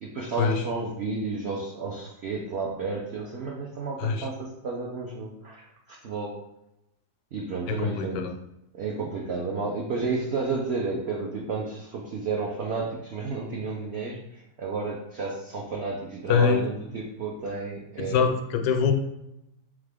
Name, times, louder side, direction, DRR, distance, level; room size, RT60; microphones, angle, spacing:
voice 1, 0.0-5.7 6.0-6.4 7.3-8.2 8.7-18.2, right 3 dB, 75° right, -2 dB, 0.6 m, -31 dB
voice 2, 7.7-8.3 16.3-16.7 18.0-18.9, left 6 dB, 90° left, 6 dB, 1.2 m, -24 dB
3.6 x 3.6 x 3.4 m, 0.87 s
omnidirectional pair, 1.8 m